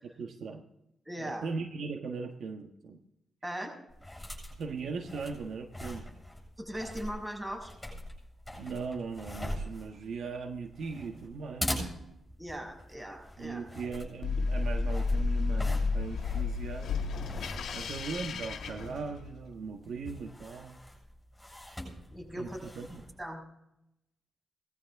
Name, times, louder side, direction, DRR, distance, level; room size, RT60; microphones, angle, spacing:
voice 1, 0.0-0.6 1.2-3.0 4.6-6.1 8.6-11.9 13.4-17.0 17.7-20.8 22.4-22.5 22.8-23.0, right 4 dB, 75° right, 5 dB, 1.3 m, -39 dB
voice 2, 1.0-1.4 3.4-3.7 6.6-7.7 12.4-13.7 22.1-22.6 22.8-23.4, equal, 15° right, 2 dB, 6.2 m, -39 dB
sound 1, 3.9-23.2, equal, 10° left, 7.6 m, -42 dB
sound 2, 14.2-19.5, left 4 dB, 75° left, 1.7 m, -32 dB
18.5 x 14.5 x 3.6 m, 0.83 s
cardioid pair, 60°, 0 cm